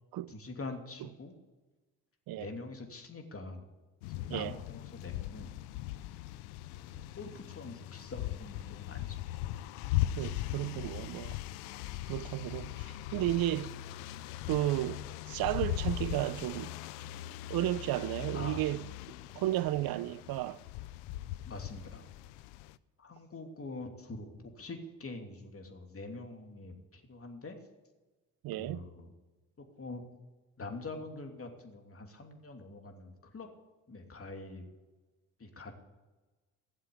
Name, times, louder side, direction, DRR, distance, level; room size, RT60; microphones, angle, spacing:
voice 1, 0.3-1.3 2.4-3.6 4.2-5.5 6.1-6.2 6.9-9.2 18.3-18.6 21.4-22.1 23.0-27.6 28.6-29.1 29.8-30.1 30.6-33.5 33.9-34.6 35.4-35.7, left 3 dB, 35° left, 2.9 m, -45 dB
sound 1, 4.0-22.7, left 14 dB, 90° left, 0.5 m, -39 dB
voice 2, 10.2-11.4 12.1-13.8 14.5-16.7 17.5-18.9 19.3-20.6 28.4-28.9, right 15 dB, 70° right, 0.6 m, -33 dB
16.5 x 7.4 x 8.6 m
hypercardioid pair, 55°, 38 cm